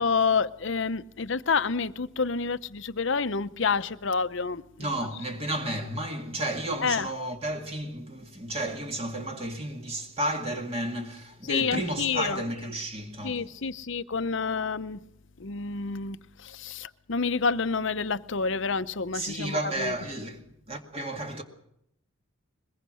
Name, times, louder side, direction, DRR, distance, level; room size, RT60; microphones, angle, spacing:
voice 1, 0.0-4.9 6.8-7.1 11.5-12.4 13.2-15.0 15.4-19.9, left 5 dB, 60° left, 0.8 m, -28 dB
voice 2, 4.8-13.4 19.1-20.4 20.7-21.4, right 1 dB, 30° right, 2.1 m, -32 dB
22.0 x 20.5 x 6.4 m
head